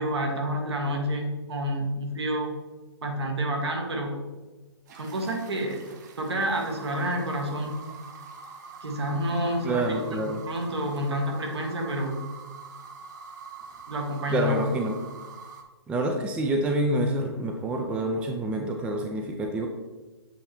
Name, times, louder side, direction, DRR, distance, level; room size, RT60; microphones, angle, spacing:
voice 1, 0.0-2.5 3.0-4.1 5.0-5.8 6.2-7.7 8.8-12.2 13.9-14.6, equal, 70° right, 2 dB, 1.5 m, -29 dB
sound 1, 4.9-15.6, right 5 dB, 40° right, 0.8 m, -45 dB
voice 2, 9.6-10.4 14.3-14.9 15.9-19.7, right 1 dB, 10° right, 3 dB, 0.4 m, -27 dB
7.7 x 3.2 x 4.3 m, 1.2 s
figure-of-eight pair, 130°, 14 cm